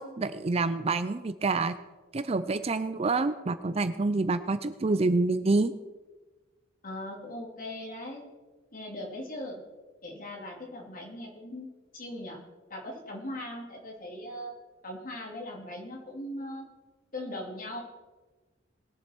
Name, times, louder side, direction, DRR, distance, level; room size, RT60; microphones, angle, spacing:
voice 1, 0.0-1.7 2.1-5.7, right 3 dB, 30° right, 12 dB, 0.5 m, -27 dB
voice 2, 6.8-8.3 8.7-9.6 10.0-11.7 11.9-12.4 12.7-14.5 14.8-16.7 17.1-17.8, left 1 dB, 45° left, 0 dB, 2.8 m, -39 dB
20.5 x 7.3 x 4.5 m, 1.2 s
head